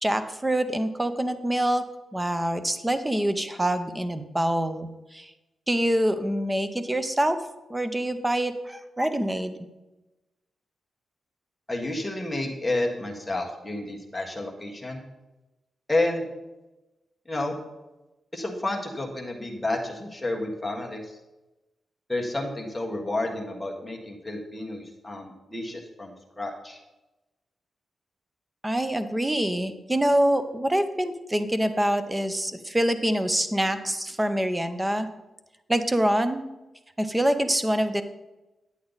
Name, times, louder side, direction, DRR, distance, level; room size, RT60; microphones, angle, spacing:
voice 1, 0.0-1.8 2.1-5.3 5.7-7.4 7.7-9.5 28.6-35.1 35.7-36.4 37.0-38.0, right 1 dB, 10° right, 9 dB, 0.7 m, -25 dB
voice 2, 11.7-15.0 15.9-16.3 17.3-17.6 18.3-21.2 22.1-26.8, left 2 dB, 10° left, 0 dB, 1.5 m, -30 dB
10.5 x 8.4 x 4.0 m, 1.0 s
wide cardioid pair, 155°, 0 cm